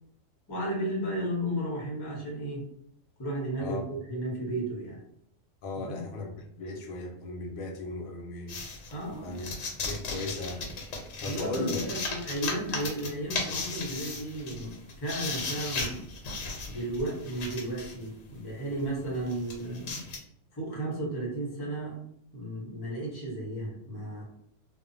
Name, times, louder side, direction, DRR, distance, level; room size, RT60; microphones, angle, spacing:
voice 1, 0.5-2.6 3.2-5.0 5.8-6.3 8.9-9.4 11.2-16.0 16.7-20.1 20.5-22.0 22.3-24.2, right 1 dB, 25° left, -3 dB, 0.6 m, -34 dB
voice 2, 5.6-8.6 9.2-9.5 9.8-10.7 11.2-11.9, left 2 dB, 85° left, 2 dB, 1.0 m, -36 dB
sound 1, 8.5-18.1 18.7-18.8 19.2-20.2, left 3 dB, 70° left, 1.1 m, -36 dB
2.7 x 2.1 x 2.5 m, 0.72 s
omnidirectional pair, 1.4 m